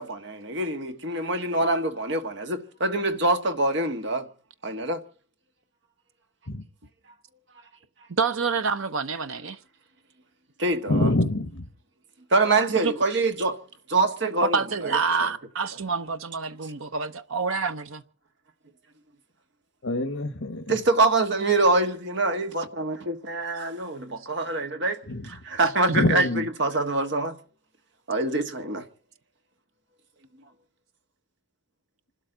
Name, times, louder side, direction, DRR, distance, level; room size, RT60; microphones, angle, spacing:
voice 1, 0.0-4.2 4.6-5.0 10.6-11.1 12.3-13.6 13.9-14.6 14.8-15.0 20.7-25.0 25.3-27.4 28.1-28.8, right 2 dB, 55° right, 1.4 m, -25 dB
voice 2, 8.1-9.6 12.8-12.9 14.4-18.0, right 5 dB, 75° right, 0.8 m, -27 dB
voice 3, 10.9-11.6 19.8-20.6 25.1-25.3 25.9-26.4, left 2 dB, 75° left, 1.2 m, -25 dB
27.0 x 12.5 x 3.9 m
head